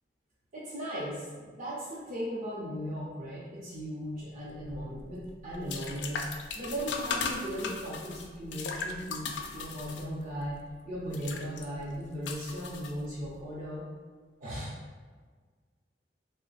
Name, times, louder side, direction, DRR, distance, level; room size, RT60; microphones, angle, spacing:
voice 1, 0.5-6.3 6.5-10.6 10.9-13.9 14.4-14.7, equal, 45° right, -9 dB, 0.6 m, -37 dB
sound 1, 4.5-13.4, left 4 dB, 70° left, 0.4 m, -38 dB
3.2 x 2.0 x 3.9 m, 1.5 s
head